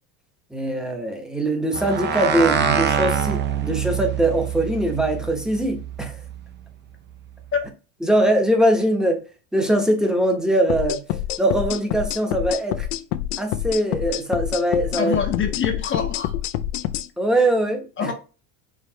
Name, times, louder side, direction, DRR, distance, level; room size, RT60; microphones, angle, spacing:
voice 1, 0.5-6.2 8.0-9.2 9.5-11.0 11.4-12.9 13.4-15.1 17.2-18.1, right 1 dB, ahead, 0.8 m, -22 dB
sound 1, 1.7-6.4, right 7 dB, 25° right, 0.5 m, -25 dB
sound 2, 10.7-17.1, left 12 dB, 85° left, 0.5 m, -27 dB
voice 2, 15.0-16.3 18.0-18.1, left 7 dB, 30° left, 0.7 m, -24 dB
4.8 x 3.1 x 2.8 m
supercardioid pair, 115°, 43 cm